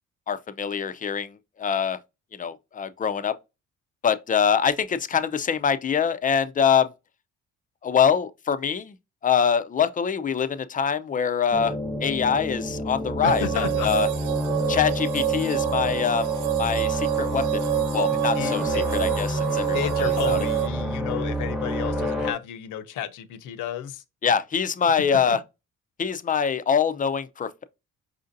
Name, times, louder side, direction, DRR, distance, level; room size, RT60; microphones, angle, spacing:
voice 1, 0.3-2.0 2.4-3.4 4.0-6.9 7.8-8.9 9.2-11.8 12.0-14.1 14.7-16.3 16.6-17.6 17.9-20.4 24.2-25.4 26.0-27.6, left 7 dB, 30° left, 0.4 m, -24 dB
sound 1, 11.5-22.3, equal, ahead, 0.8 m, -29 dB
voice 2, 13.2-13.9 18.1-18.9 19.7-24.0 25.1-25.4, left 10 dB, 85° left, 0.6 m, -32 dB
sound 2, 13.3-20.7, right 17 dB, 90° right, 0.5 m, -27 dB
4.9 x 2.6 x 2.5 m
cardioid pair, 90°, 30 cm